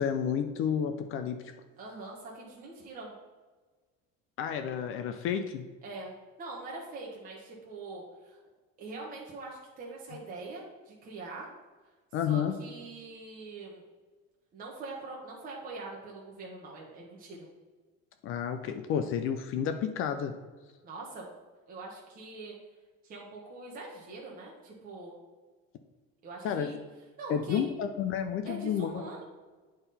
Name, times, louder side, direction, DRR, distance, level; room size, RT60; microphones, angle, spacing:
voice 1, 0.0-1.5 4.4-5.7 12.1-12.6 18.2-20.4 26.4-26.8 27.3-29.0, left 8 dB, 45° left, 8 dB, 0.5 m, -31 dB
voice 2, 1.8-3.1 5.8-8.4 8.8-11.5 12.3-13.8 14.5-17.5 20.8-21.3 21.7-22.5 23.0-25.2 26.2-26.8 27.2-27.6 28.4-29.2, right 2 dB, 30° right, -3 dB, 1.1 m, -43 dB
8.9 x 3.8 x 4.1 m, 1.3 s
cardioid pair, 155°, 29 cm